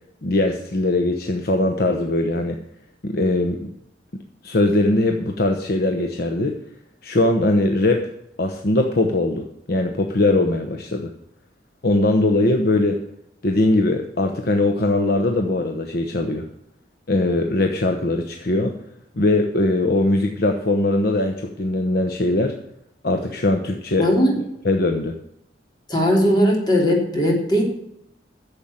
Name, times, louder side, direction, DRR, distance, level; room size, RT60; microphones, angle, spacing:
voice 1, 0.2-2.6 3.0-3.7 4.1-6.6 7.0-8.1 8.4-11.1 11.8-13.0 13.4-16.4 17.1-18.7 19.2-22.6 23.0-24.1 24.6-25.2, left 2 dB, 60° left, 4 dB, 1.0 m, -21 dB
voice 2, 24.0-24.4 25.9-27.6, equal, 25° left, -1 dB, 3.3 m, -18 dB
10.5 x 7.2 x 7.3 m, 0.77 s
head